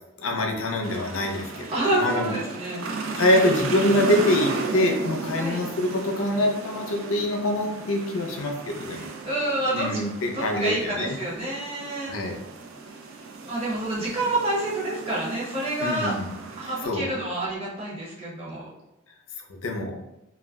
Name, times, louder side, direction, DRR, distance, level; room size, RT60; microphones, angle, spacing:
voice 1, 0.2-2.4 3.2-9.1 9.7-11.2 12.1-12.4 15.8-16.3 16.6-17.1 19.6-20.0, left 1 dB, 85° left, 2 dB, 0.5 m, -25 dB
sound 1, 0.8-16.8, right 3 dB, 80° right, 0.4 m, -35 dB
voice 2, 1.7-3.2 5.4-5.6 8.8-10.0 10.3-12.2 12.9-13.1 13.4-16.2 16.5-18.7, right 1 dB, 30° right, -6 dB, 0.8 m, -28 dB
2.3 x 2.1 x 3.4 m, 0.93 s
head